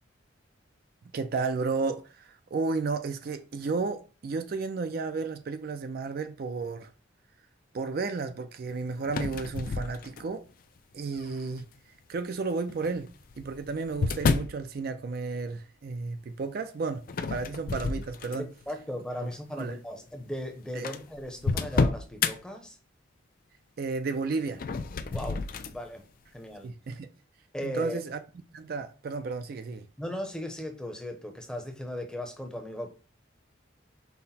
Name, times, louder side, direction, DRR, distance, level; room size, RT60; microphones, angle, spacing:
voice 1, 1.1-6.9 7.7-10.4 10.9-11.7 12.1-13.1 13.4-18.5 19.6-19.8 20.7-20.9 23.8-24.6 26.6-27.1 27.6-28.2 28.5-29.9, right 4 dB, 50° right, 0.3 m, -33 dB
sound 1, 9.0-10.5 11.2-11.6 12.7-14.6 17.1-18.6 19.1-19.4 20.1-20.2 20.4-20.5 20.8-22.3 24.5-25.8, left 4 dB, 45° left, 0.3 m, -30 dB
voice 2, 18.4-22.8 25.1-25.5 25.7-26.0 26.3-26.7 27.5-28.0 30.0-32.9, equal, 5° left, 0.6 m, -37 dB
5.7 x 2.1 x 4.1 m
head